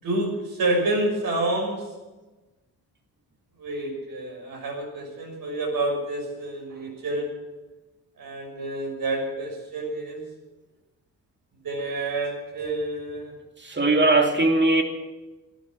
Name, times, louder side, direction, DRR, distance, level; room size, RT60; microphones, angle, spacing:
voice 1, 0.0-1.9 3.6-7.4 8.2-10.3 11.6-13.3, right 2 dB, 60° right, 1 dB, 5.8 m, -28 dB
voice 2, 13.6-14.8, right 2 dB, 30° right, 4 dB, 2.7 m, -19 dB
15.5 x 11.0 x 7.5 m, 1.1 s
cardioid pair, 70°, 39 cm